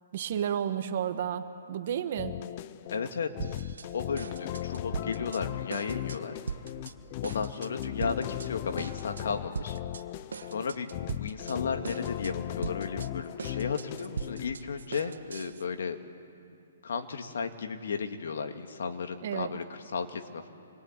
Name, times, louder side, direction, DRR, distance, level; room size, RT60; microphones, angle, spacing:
voice 1, 0.1-2.4 19.2-19.5, right 9 dB, 45° right, 9 dB, 1.5 m, -32 dB
sound 1, 2.2-14.5, left 14 dB, 35° left, 0.6 m, -38 dB
voice 2, 2.9-3.3 3.9-6.4 7.2-9.8 10.5-16.0 16.8-19.6 19.9-20.5, left 5 dB, 70° left, 6 dB, 2.3 m, -34 dB
sound 2, 3.4-3.9 4.2-5.4 5.7-6.2 6.5-6.9 7.2-8.5 8.8-9.2 9.5-10.0 10.3-11.6 11.8-12.3 12.6-15.6, right 5 dB, 85° right, 1.4 m, -39 dB
27.5 x 22.0 x 9.1 m, 2.6 s
hypercardioid pair, 160°, 0 cm